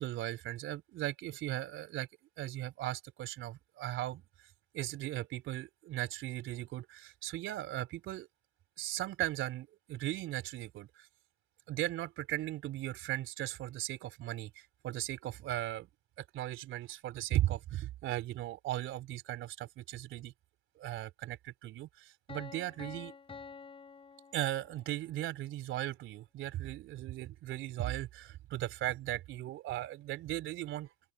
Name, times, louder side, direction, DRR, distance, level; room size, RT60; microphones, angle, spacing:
voice 1, 0.0-2.1 2.4-4.2 4.7-8.3 8.8-11.1 11.7-15.9 16.2-20.3 20.8-23.1 24.3-30.9, right 14 dB, 40° right, 3.3 m, -37 dB
Piano, 22.3-25.1, left 5 dB, 15° left, 7.4 m, -49 dB
hypercardioid pair, 95°, 30 cm